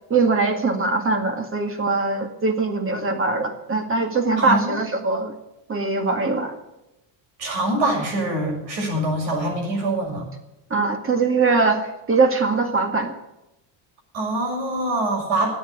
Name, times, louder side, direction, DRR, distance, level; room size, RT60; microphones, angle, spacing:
voice 1, 0.1-5.3 5.7-6.6 10.7-13.1, right 3 dB, 30° right, 7 dB, 2.0 m, -22 dB
voice 2, 4.4-4.7 7.4-10.2 14.1-15.5, right 1 dB, 70° right, 0 dB, 6.8 m, -24 dB
13.5 x 8.8 x 9.7 m, 0.93 s
cardioid pair, 145°, 45 cm